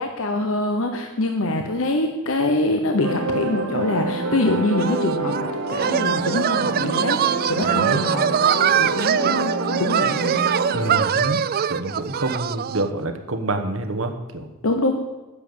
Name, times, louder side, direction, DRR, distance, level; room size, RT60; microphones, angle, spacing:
voice 1, 0.0-10.4 14.6-15.0, left 2 dB, 65° left, 4 dB, 0.9 m, -24 dB
sound 1, 3.0-11.0, right 2 dB, 85° right, 1.4 m, -27 dB
sound 2, 4.8-12.9, right 8 dB, 40° right, 0.3 m, -23 dB
voice 2, 7.6-8.0 10.7-11.4 11.7-14.5, right 2 dB, 65° right, 6 dB, 1.3 m, -27 dB
10.0 x 7.3 x 8.6 m, 1.1 s
head